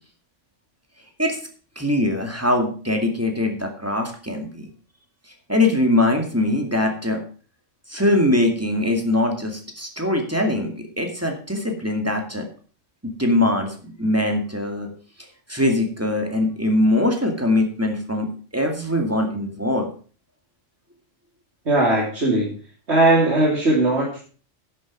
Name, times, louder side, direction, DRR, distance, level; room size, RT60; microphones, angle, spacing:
voice 1, 1.8-4.7 5.5-7.2 7.9-12.5 13.0-14.9 15.5-19.9, left 1 dB, 10° right, 3 dB, 2.2 m, -22 dB
voice 2, 21.6-22.5 22.9-24.2, right 2 dB, 60° right, -3 dB, 3.1 m, -18 dB
11.0 x 7.5 x 6.1 m, 0.40 s
omnidirectional pair, 1.3 m